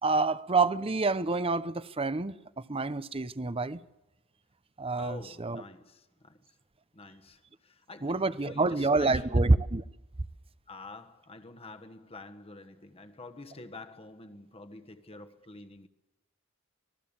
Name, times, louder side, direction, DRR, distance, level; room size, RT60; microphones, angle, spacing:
voice 1, 0.0-2.3 2.7-3.8 4.8-5.6 8.0-9.8, right 3 dB, 25° right, 0.8 m, -27 dB
voice 2, 5.0-6.5 6.9-9.5 10.7-15.9, left 3 dB, 25° left, 1.4 m, -48 dB
26.5 x 20.0 x 7.3 m
head